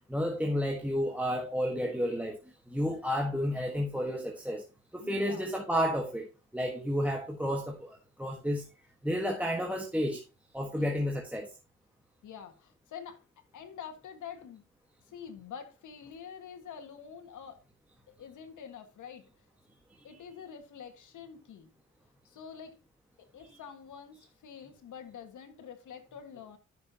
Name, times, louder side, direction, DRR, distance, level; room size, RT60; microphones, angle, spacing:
voice 1, 0.1-2.4 2.7-4.6 4.9-6.3 6.5-8.6 9.0-10.2 10.5-11.5 23.5-23.6, equal, 5° right, 1.5 m, -31 dB
voice 2, 5.0-5.5 10.7-11.0 12.2-13.2 13.5-14.6 15.1-17.6 18.1-19.3 20.0-21.7 22.2-22.8 23.2-26.6, left 7 dB, 85° left, 1.8 m, -46 dB
13.0 x 6.8 x 2.9 m
cardioid pair, 90°, 29 cm